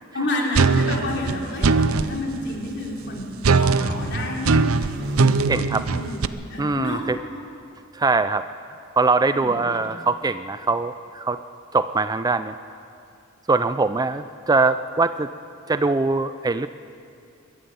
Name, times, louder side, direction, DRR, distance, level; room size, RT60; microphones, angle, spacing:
voice 1, 0.1-3.3 3.6-4.7 5.7-7.1 9.3-9.7, left 1 dB, 55° left, -1 dB, 3.5 m, -29 dB
sound 1, 0.6-2.1 3.4-6.3, right 4 dB, 80° right, 0.7 m, -20 dB
sound 2, 1.8-7.3, equal, 60° right, 1.7 m, -35 dB
voice 2, 5.5-5.8 6.6-7.2 7.9-8.4 9.0-11.4 11.7-12.6 13.5-15.3 15.7-16.7, right 3 dB, 20° right, 12 dB, 0.4 m, -22 dB
21.5 x 13.0 x 9.5 m, 2.5 s
head